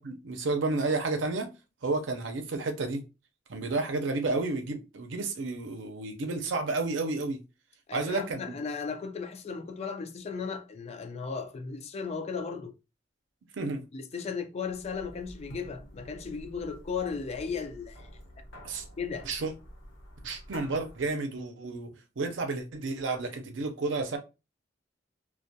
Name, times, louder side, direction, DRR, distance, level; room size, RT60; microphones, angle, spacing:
voice 1, 0.0-1.5 1.8-3.0 3.5-7.4 7.9-8.6 13.5-13.8 18.6-18.8 19.2-19.5 20.2-24.2, right 3 dB, 80° right, 0.5 m, -31 dB
voice 2, 7.9-12.7 13.9-18.1 19.0-19.3, left 5 dB, 35° left, 0.3 m, -36 dB
sound 1, 14.7-21.2, equal, 90° left, 0.9 m, -49 dB
2.2 x 2.2 x 2.7 m
head